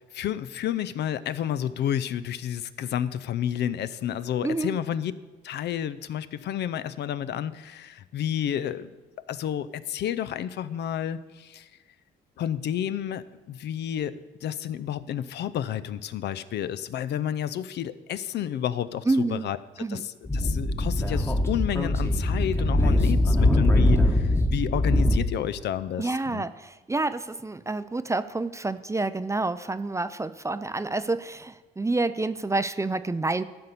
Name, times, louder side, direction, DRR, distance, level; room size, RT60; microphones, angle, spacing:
voice 1, 0.0-5.1 5.4-8.9 9.3-11.7 12.4-26.4, left 10 dB, 60° left, 14 dB, 0.5 m, -31 dB
voice 2, 4.4-4.8 19.1-19.5 19.8-20.1 26.0-33.4, right 2 dB, 15° right, 13 dB, 0.4 m, -28 dB
Speech / Wind, 20.3-25.2, left 1 dB, 15° left, 1.2 m, -22 dB
12.0 x 4.2 x 6.7 m, 1.2 s
hypercardioid pair, 55°, 20 cm